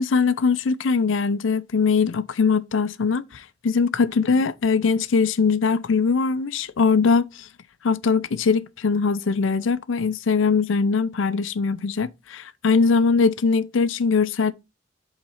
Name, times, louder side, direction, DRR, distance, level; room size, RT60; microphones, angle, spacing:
voice 1, 0.0-7.5 7.8-14.5, left 5 dB, 80° left, 0.5 m, -21 dB
5.5 x 4.0 x 5.6 m
head